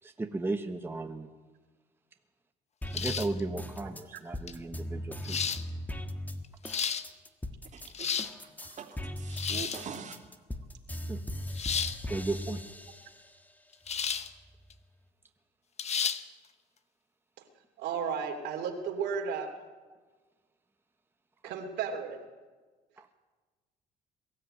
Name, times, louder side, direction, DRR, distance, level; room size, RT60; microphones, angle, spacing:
voice 1, 0.0-1.3 2.9-5.5 11.1-11.2 12.1-12.6 21.4-21.5 23.0-23.1, right 3 dB, 15° right, 5 dB, 1.2 m, -35 dB
sound 1, 2.8-7.9 8.2-13.4 13.9-14.8, left 1 dB, 10° left, 1.5 m, -39 dB
sound 2, 2.9-3.4 4.5-4.6 5.2-5.6 6.4-7.0 7.8-8.3 9.3-9.8 11.5-12.0 13.9-14.3 14.7-14.8 15.8-16.2, left 7 dB, 40° left, 1.1 m, -32 dB
voice 2, 7.7-10.2, right 7 dB, 45° right, 4 dB, 2.8 m, -44 dB
voice 3, 17.8-19.5 21.4-22.2, right 6 dB, 85° right, 4 dB, 3.1 m, -33 dB
22.5 x 13.5 x 9.0 m, 1.3 s
cardioid pair, 110°, 17 cm